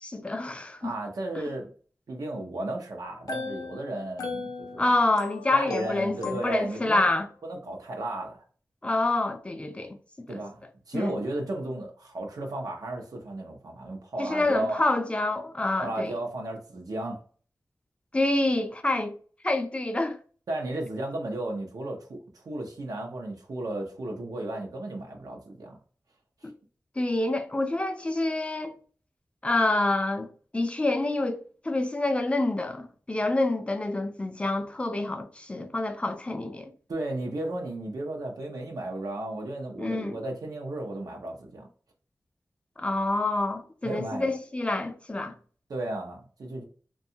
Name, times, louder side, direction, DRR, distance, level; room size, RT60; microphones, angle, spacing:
voice 1, 0.0-0.9 1.4-1.5 4.8-7.3 8.8-10.0 10.3-10.4 10.9-11.2 14.2-16.1 18.1-19.2 19.4-20.2 27.0-28.7 29.4-36.7 39.8-40.2 42.8-45.3, left 2 dB, 20° left, 0.4 m, -27 dB
voice 2, 0.8-1.7 2.1-4.9 5.5-7.1 7.4-8.4 10.3-10.6 10.9-14.8 15.8-17.2 20.5-25.8 36.9-41.7 43.8-44.3 45.7-46.6, right 1 dB, 85° right, 0.6 m, -34 dB
sound 1, 3.1-7.0, left 4 dB, 90° left, 0.5 m, -38 dB
2.7 x 2.2 x 2.6 m
wide cardioid pair, 100°, 6 cm